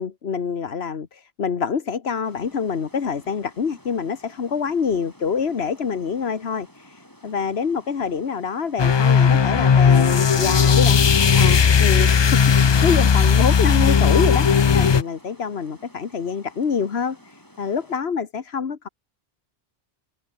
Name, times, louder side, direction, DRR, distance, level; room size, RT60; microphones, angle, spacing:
voice 1, 0.0-14.5 14.7-18.9, left 6 dB, 90° left, 1.6 m, -26 dB
Water, 2.2-18.0, equal, 20° left, 6.3 m, -51 dB
sound 1, 8.8-15.0, left 6 dB, 40° left, 0.4 m, -16 dB
open air
omnidirectional pair, 1.0 m